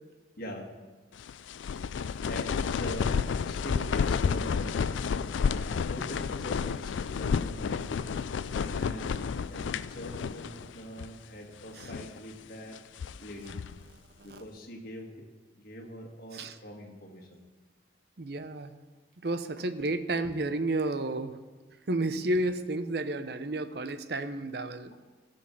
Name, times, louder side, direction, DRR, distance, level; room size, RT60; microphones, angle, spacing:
voice 1, 0.4-0.7 2.2-3.2 3.4-4.8 5.5-7.9 8.6-12.8 13.2-13.5 14.2-15.2 15.6-17.4, equal, 50° left, 0 dB, 1.8 m, -43 dB
sound 1, 1.2-10.7 11.0-11.1 11.7-12.2 12.7-13.8, left 6 dB, 90° left, 0.4 m, -31 dB
voice 2, 18.2-18.8 19.2-21.4 21.9-24.9, right 2 dB, 60° right, 10 dB, 0.7 m, -31 dB
15.5 x 5.4 x 7.0 m, 1.3 s
head